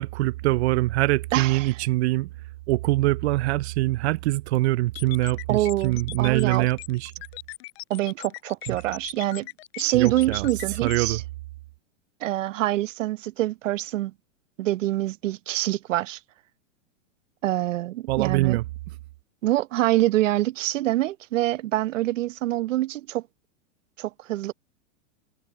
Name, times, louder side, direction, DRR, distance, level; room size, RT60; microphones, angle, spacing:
voice 1, 0.0-2.3 2.7-7.1 8.7-8.8 9.9-10.5 10.8-11.2 18.1-18.6, right 18 dB, 60° right, 0.5 m, -24 dB
voice 2, 1.3-1.8 5.5-6.7 7.9-9.5 9.8-11.2 12.2-14.1 14.6-16.2 17.4-18.6 19.4-23.2 24.0-24.5, right 15 dB, 80° right, 0.8 m, -25 dB
sound 1, 4.9-11.1, left 20 dB, 55° left, 5.2 m, -40 dB
supercardioid pair, 140°, 37 cm